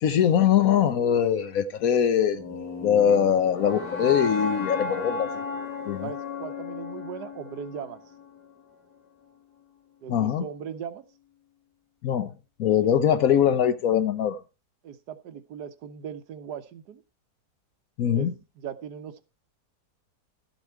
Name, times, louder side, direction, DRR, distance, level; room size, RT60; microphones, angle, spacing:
voice 1, 0.0-2.4 2.8-5.3 5.9-6.1 10.1-10.4 12.0-12.3 12.6-14.4 18.0-18.3, left 9 dB, 65° left, 1.1 m, -22 dB
sound 1, 2.4-8.5, left 3 dB, 90° left, 2.9 m, -34 dB
voice 2, 6.0-8.0 10.0-11.0 14.8-17.0 18.1-19.2, right 8 dB, 80° right, 1.4 m, -38 dB
12.5 x 7.2 x 4.5 m
omnidirectional pair, 1.7 m